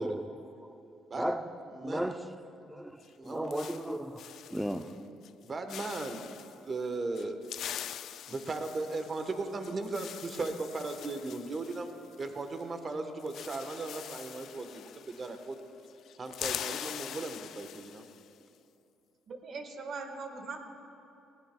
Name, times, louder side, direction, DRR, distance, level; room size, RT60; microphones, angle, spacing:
voice 1, 0.0-1.5 1.8-2.3 2.7-4.2 4.5-5.0, right 1 dB, 5° right, 0.6 m, -36 dB
sound 1, 3.0-5.0 5.2-5.4 5.7-6.6 7.1-12.6 12.9-13.0 13.2-15.6 15.9-18.3, left 10 dB, 65° left, 0.3 m, -43 dB
voice 2, 3.2-4.0 5.4-7.4 8.3-11.9 12.2-15.6 16.2-18.0, right 3 dB, 35° right, 1.2 m, -37 dB
voice 3, 19.3-20.6, right 4 dB, 55° right, 1.6 m, -40 dB
19.5 x 16.5 x 2.3 m
cardioid pair, 90°, 0 cm